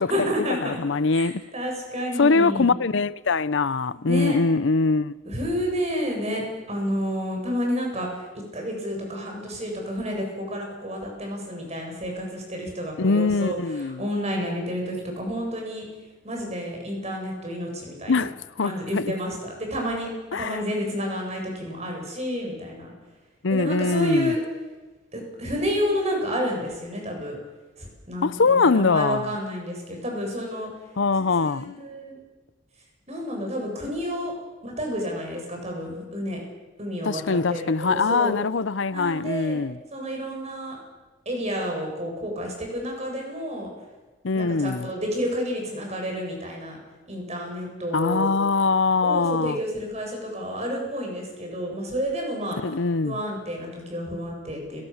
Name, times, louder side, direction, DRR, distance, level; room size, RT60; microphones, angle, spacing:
voice 1, 0.1-0.8 1.1-2.7 4.1-4.4 5.2-8.3 8.5-15.8 16.2-18.3 18.6-22.9 23.5-24.4 25.1-27.4 27.8-30.7 31.3-32.2 33.1-34.3 34.6-36.4 36.8-38.3 38.9-39.6 39.9-40.8 41.3-43.7 44.3-46.8 47.1-48.3 49.0-52.6 53.0-54.8, equal, 35° right, 7.9 m, -30 dB
voice 2, 0.6-1.4 2.2-5.2 13.0-14.1 18.1-19.1 20.3-20.6 23.4-24.3 28.2-29.3 31.0-31.7 37.0-39.8 44.2-44.9 47.9-49.6 52.6-53.2, left 4 dB, 70° left, 0.7 m, -22 dB
30.0 x 18.5 x 7.2 m
head